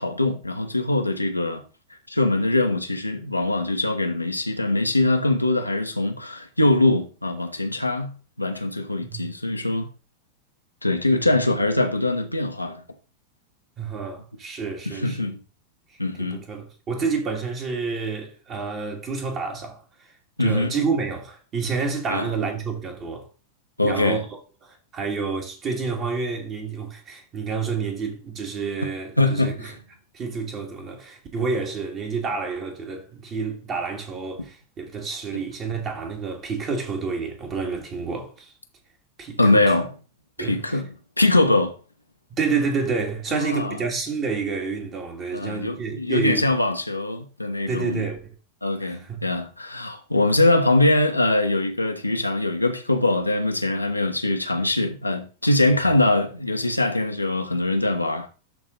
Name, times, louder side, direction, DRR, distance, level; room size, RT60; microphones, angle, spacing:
voice 1, 0.0-1.6 2.1-8.1 8.4-9.9 10.8-12.8 14.8-15.4 16.0-16.4 20.4-20.7 22.1-22.3 23.8-24.2 29.2-29.7 39.4-39.9 40.4-40.9 41.2-41.8 43.3-43.8 45.3-48.0 48.6-58.3, left 2 dB, 85° left, 1.2 m, -22 dB
voice 2, 13.8-15.3 15.9-20.1 20.4-23.3 23.8-24.2 24.6-29.7 30.1-38.5 39.2-39.6 40.4-40.8 42.4-46.5 47.7-48.3 48.8-49.2 55.8-55.9, right 4 dB, 30° right, 2.5 m, -29 dB
12.0 x 4.1 x 4.0 m
figure-of-eight pair, 90°, 0 cm